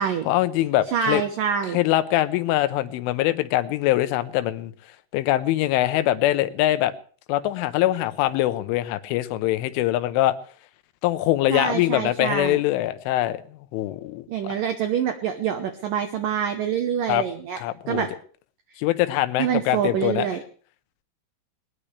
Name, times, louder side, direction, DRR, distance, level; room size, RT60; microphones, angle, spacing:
voice 1, 0.3-1.2 1.7-4.7 5.1-6.9 7.3-10.4 11.0-13.4 13.7-14.5 17.1-17.3 17.6-18.0 18.8-20.3, left 15 dB, 90° left, 12 dB, 3.4 m, -23 dB
voice 2, 0.9-1.8 11.5-12.6 14.3-17.6 17.9-18.1 19.4-20.4, right 8 dB, 85° right, 7 dB, 1.9 m, -26 dB
20.0 x 19.5 x 3.4 m, 0.43 s
omnidirectional pair, 5.5 m